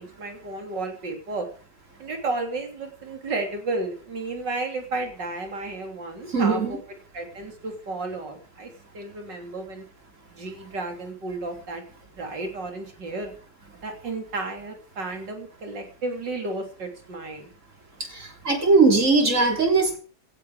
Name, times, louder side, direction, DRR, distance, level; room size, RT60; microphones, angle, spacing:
voice 1, 0.0-1.5 2.0-6.8 7.1-8.7 8.9-9.8 10.3-11.8 12.1-13.3 13.8-17.5, right 2 dB, 75° right, 4 dB, 3.8 m, -32 dB
voice 2, 6.3-6.8 18.1-20.0, right 3 dB, 45° right, 3 dB, 3.7 m, -20 dB
17.5 x 11.5 x 4.9 m, 0.41 s
omnidirectional pair, 1.9 m